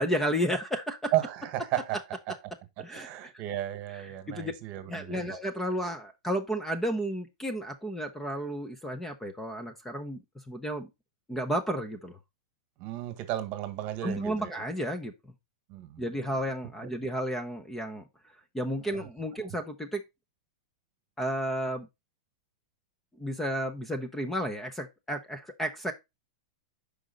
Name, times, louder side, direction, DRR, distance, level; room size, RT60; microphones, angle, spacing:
voice 1, 0.0-1.1 2.8-3.1 3.9-4.5 4.9-10.2 10.5-10.9 11.3-12.2 14.0-15.1 16.0-18.0 18.5-20.0 21.2-21.9 23.2-25.9, equal, 5° left, 0.8 m, -32 dB
voice 2, 1.1-2.0 2.8-5.4 12.8-14.6 15.7-16.0 18.9-19.1, right 14 dB, 40° right, 1.4 m, -34 dB
6.2 x 5.2 x 3.8 m
hypercardioid pair, 145°, 4 cm